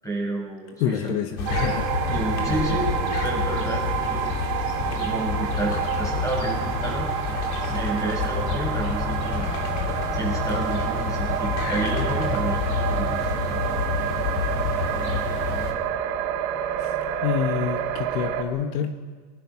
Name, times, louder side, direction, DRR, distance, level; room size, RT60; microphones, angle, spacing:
voice 1, 0.0-1.6 2.1-2.9 3.2-4.3 4.9-7.1 7.6-9.5 10.1-13.1, right 2 dB, 5° left, -2 dB, 7.7 m, -30 dB
voice 2, 0.8-1.9 16.8-19.0, left 9 dB, 60° left, 6 dB, 1.5 m, -27 dB
sound 1, 1.4-15.7, left 6 dB, 90° left, 4.3 m, -28 dB
sound 2, 1.5-18.4, right 10 dB, 80° right, 3.5 m, -28 dB
23.5 x 22.0 x 6.1 m, 1.5 s
supercardioid pair, 160°, 49 cm